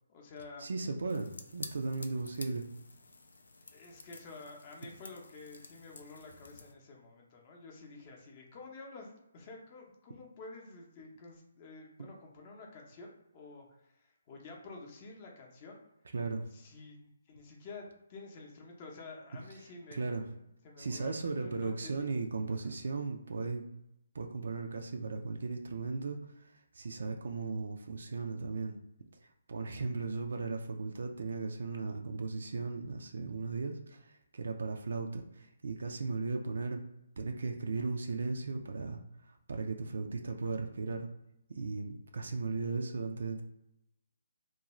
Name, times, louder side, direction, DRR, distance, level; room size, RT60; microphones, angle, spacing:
voice 1, 0.1-0.7 3.7-15.8 16.5-20.1 20.6-22.1 22.6-22.7, left 3 dB, 35° left, -1 dB, 0.6 m, -50 dB
voice 2, 0.6-2.6 16.1-16.4 19.9-20.2 20.8-23.6 24.1-26.2 26.7-28.8 29.5-36.8 37.2-41.1 41.6-43.4, right 4 dB, 65° right, 4 dB, 0.3 m, -36 dB
sound 1, 1.1-6.7, left 3 dB, 80° left, 0.4 m, -51 dB
2.5 x 2.2 x 3.0 m, 0.85 s
figure-of-eight pair, 145°, 0 cm